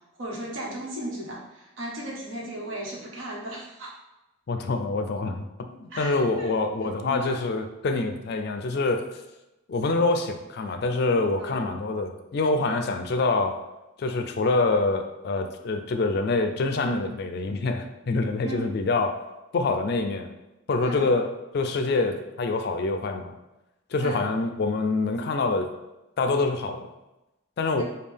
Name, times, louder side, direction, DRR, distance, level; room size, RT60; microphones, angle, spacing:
voice 1, 0.0-3.9 5.9-6.6 7.0-7.4 11.4-11.6 18.4-18.7 20.8-21.1 24.0-24.2 27.8-27.9, right 1 dB, 80° right, -3 dB, 1.2 m, -36 dB
voice 2, 4.5-9.1 9.7-13.6 14.0-19.2 19.5-20.3 20.7-23.3 23.9-25.7 26.2-26.9 27.6-27.8, left 3 dB, 55° left, 7 dB, 0.4 m, -26 dB
5.2 x 2.3 x 3.4 m, 0.99 s
head